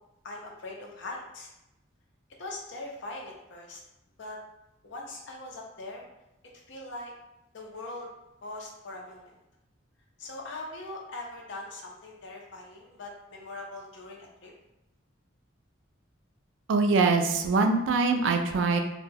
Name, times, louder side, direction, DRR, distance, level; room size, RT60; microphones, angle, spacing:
voice 1, 0.2-1.5 2.4-3.8 4.2-4.4 4.8-6.1 6.7-7.1 7.5-8.1 8.4-9.3 10.2-14.5, left 2 dB, 65° left, 0 dB, 0.5 m, -41 dB
voice 2, 16.7-18.8, right 4 dB, 70° right, 5 dB, 0.3 m, -23 dB
2.2 x 2.1 x 3.2 m, 0.91 s
head